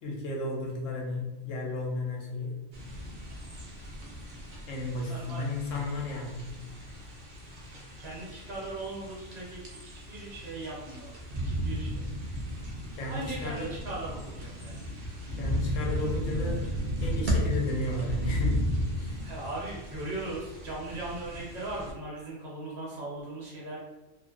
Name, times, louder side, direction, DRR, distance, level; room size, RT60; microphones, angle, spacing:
voice 1, 0.0-2.6 4.7-6.5 12.9-13.7 15.3-18.7 19.0-19.2, left 2 dB, 70° left, -2 dB, 1.0 m, -33 dB
sound 1, 2.7-21.9, equal, 60° right, 0.5 m, -35 dB
voice 2, 5.0-5.5 8.0-11.2 11.4-12.1 13.0-14.8 19.2-23.8, right 2 dB, 35° right, -5 dB, 0.8 m, -39 dB
2.4 x 2.1 x 2.4 m, 1.0 s
omnidirectional pair, 1.4 m